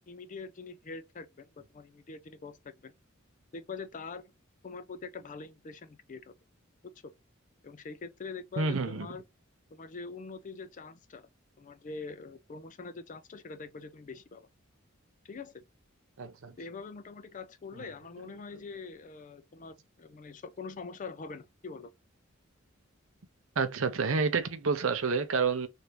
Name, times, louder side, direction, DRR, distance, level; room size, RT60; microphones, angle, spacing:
voice 1, 0.1-2.9 3.5-4.3 4.6-6.3 6.8-7.1 7.6-9.2 9.7-11.3 11.6-14.5 15.2-15.6 16.6-21.9, left 4 dB, 40° left, 0.4 m, -44 dB
voice 2, 8.6-9.1 16.2-16.6 17.8-17.9 23.6-25.7, right 4 dB, 70° right, 0.6 m, -29 dB
3.4 x 2.6 x 2.9 m
head